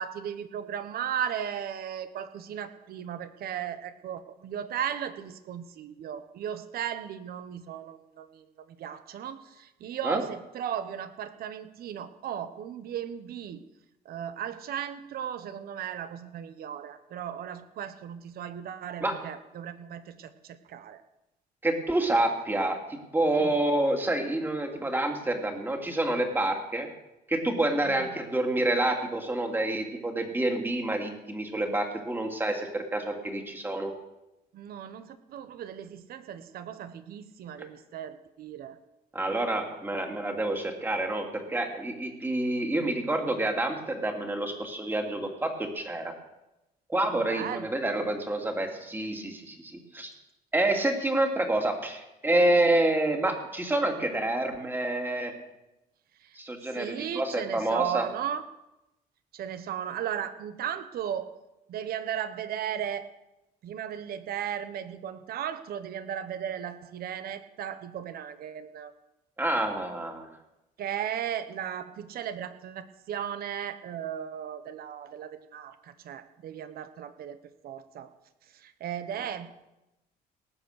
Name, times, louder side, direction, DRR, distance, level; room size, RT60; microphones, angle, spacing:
voice 1, 0.0-8.4 8.8-13.6 14.0-21.0 23.4-23.5 27.9-28.1 34.5-38.8 47.3-47.7 56.7-58.4 59.3-61.3 61.7-63.1 63.6-68.9 70.8-77.4 77.6-78.1 78.5-79.5, right 9 dB, 65° right, 11 dB, 1.3 m, -36 dB
voice 2, 21.6-26.9 27.3-33.9 39.1-46.1 46.9-50.1 50.5-55.3 56.4-58.1 69.4-70.3, right 1 dB, 10° right, 3 dB, 2.6 m, -28 dB
18.5 x 8.1 x 6.6 m, 0.94 s
cardioid pair, 110°, 17 cm